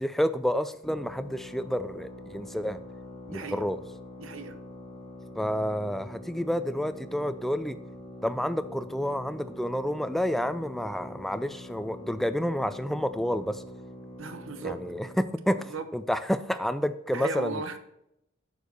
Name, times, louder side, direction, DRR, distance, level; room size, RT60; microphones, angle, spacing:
voice 1, 0.0-2.8 3.3-3.8 5.4-7.8 8.2-13.6 14.6-17.6, equal, ahead, 0.3 m, -29 dB
sound 1, 0.8-15.3, left 1 dB, 25° left, 1.3 m, -44 dB
voice 2, 3.3-3.6 4.2-4.6 14.2-14.8 15.7-15.8 17.1-17.8, right 4 dB, 70° right, 0.8 m, -36 dB
6.7 x 4.6 x 6.7 m
head